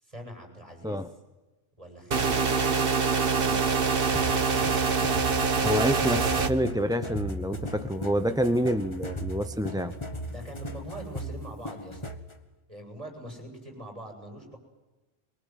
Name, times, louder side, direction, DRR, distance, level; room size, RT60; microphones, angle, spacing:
voice 1, 0.0-1.0 10.2-12.0 12.7-14.6, right 1 dB, 30° right, 2 dB, 8.1 m, -43 dB
sound 1, 2.1-6.5, right 5 dB, 50° right, 1.6 m, -25 dB
sound 2, 4.1-12.3, equal, 25° left, 1.6 m, -37 dB
voice 2, 5.6-9.9, equal, 5° right, 8 dB, 0.9 m, -27 dB
24.0 x 23.5 x 9.4 m, 1.1 s
omnidirectional pair, 1.2 m